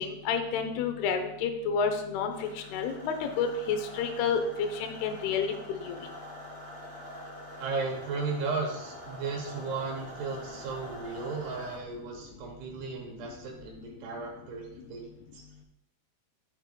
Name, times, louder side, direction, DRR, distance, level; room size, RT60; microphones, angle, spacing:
voice 1, 0.0-6.1, left 5 dB, 85° left, 5 dB, 2.2 m, -30 dB
sound 1, 2.3-11.8, equal, 20° right, 2.7 m, -46 dB
voice 2, 7.6-15.4, right 4 dB, 70° right, 1 dB, 2.7 m, -35 dB
12.0 x 6.6 x 2.2 m, 0.82 s
omnidirectional pair, 5.5 m